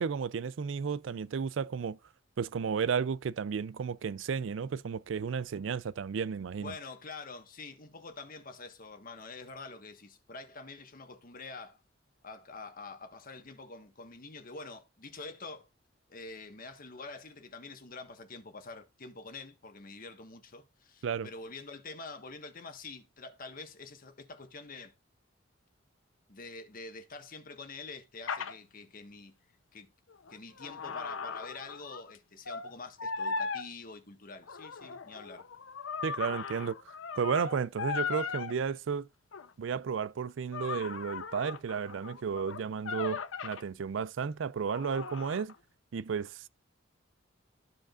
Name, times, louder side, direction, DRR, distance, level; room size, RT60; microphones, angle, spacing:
voice 1, 0.0-2.0 2.4-6.7 21.0-21.3 36.0-39.1 39.6-45.5 45.9-46.5, right 6 dB, 70° right, 0.4 m, -33 dB
voice 2, 6.6-11.8 12.2-15.7 16.1-24.9 26.3-29.4 29.7-29.9 30.3-35.5, left 3 dB, 45° left, 1.4 m, -46 dB
sound 1, 28.3-28.5 30.1-32.2 32.5-32.7 33.0-33.7 34.4-38.5 39.3-39.5 40.5-43.6 44.7-45.6, left 5 dB, 90° left, 0.7 m, -38 dB
14.0 x 4.9 x 2.5 m
head